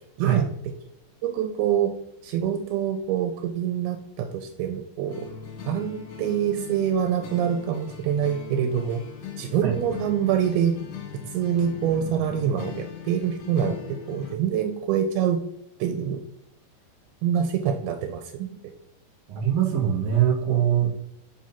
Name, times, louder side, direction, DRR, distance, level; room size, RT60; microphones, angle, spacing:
voice 1, 1.2-1.9 2.2-5.3 5.7-9.0 9.4-10.8 11.3-15.4 15.8-16.2 17.2-18.2, right 9 dB, 85° right, 6 dB, 2.4 m, -25 dB
sound 1, 5.1-14.3, left 7 dB, 75° left, 2.6 m, -39 dB
voice 2, 19.3-20.9, right 10 dB, 60° right, -1 dB, 2.4 m, -22 dB
6.3 x 5.5 x 2.8 m, 0.76 s
omnidirectional pair, 4.5 m